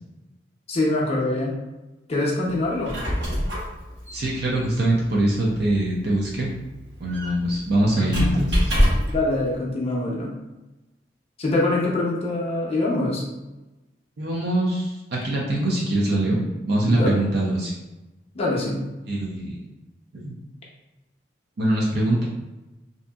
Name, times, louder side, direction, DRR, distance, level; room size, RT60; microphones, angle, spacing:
voice 1, 0.7-1.5 2.1-2.9 7.9-8.4 8.9-10.3 11.4-13.2 16.9-17.2 18.3-18.8, left 2 dB, 35° left, -4 dB, 0.5 m, -24 dB
Squeak, 2.6-9.3, equal, 80° right, 1.1 m, -26 dB
voice 2, 4.1-6.5 7.0-8.7 14.2-17.7 19.1-19.6 20.1-20.3 21.6-22.2, right 1 dB, 65° right, -3 dB, 0.5 m, -23 dB
2.7 x 2.5 x 2.2 m, 1.1 s
head